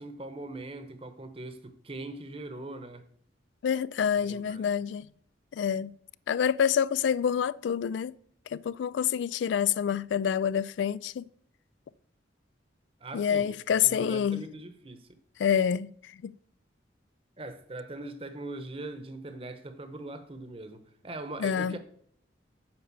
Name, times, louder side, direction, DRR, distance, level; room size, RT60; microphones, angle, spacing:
voice 1, 0.0-3.0 4.2-4.7 13.0-15.1 17.4-21.8, right 2 dB, 30° right, 0.9 m, -41 dB
voice 2, 3.6-5.1 5.5-5.9 6.3-8.1 8.5-11.3 13.1-14.4 15.4-15.9 16.2-16.3 21.4-21.8, left 8 dB, 80° left, 0.3 m, -27 dB
8.8 x 5.3 x 6.9 m
head